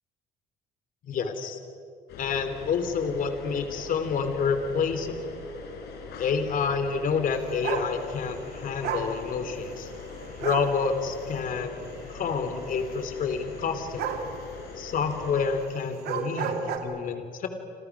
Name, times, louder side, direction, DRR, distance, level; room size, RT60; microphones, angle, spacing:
voice 1, 1.0-1.6 2.2-5.3 6.2-9.9 10.4-11.8 12.1-14.2 14.8-17.5, left 5 dB, 55° left, 8 dB, 3.3 m, -28 dB
sound 1, 2.1-15.6, left 4 dB, 75° left, 4.5 m, -42 dB
sound 2, 7.6-7.9 8.8-9.1 10.4-10.7 14.0-14.3 15.9-16.8, right 7 dB, 75° right, 3.1 m, -30 dB
29.5 x 27.0 x 6.2 m, 2.3 s
cardioid pair, 110°, 17 cm